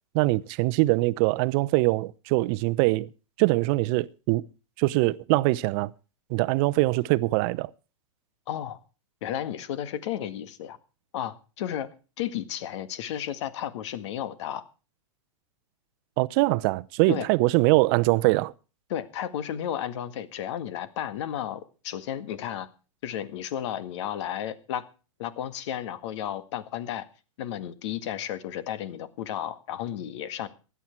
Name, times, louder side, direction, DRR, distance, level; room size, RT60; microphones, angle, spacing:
voice 1, 0.1-3.1 3.4-4.4 4.8-5.9 6.3-7.7 16.2-18.5, right 21 dB, 45° right, 0.8 m, -23 dB
voice 2, 8.5-8.8 9.2-10.8 11.1-11.9 12.2-14.6 17.1-17.3 18.9-22.7 23.0-24.8 25.2-27.1 27.4-30.5, left 10 dB, 60° left, 1.9 m, -33 dB
16.5 x 11.5 x 4.6 m
hypercardioid pair, 125°, 17 cm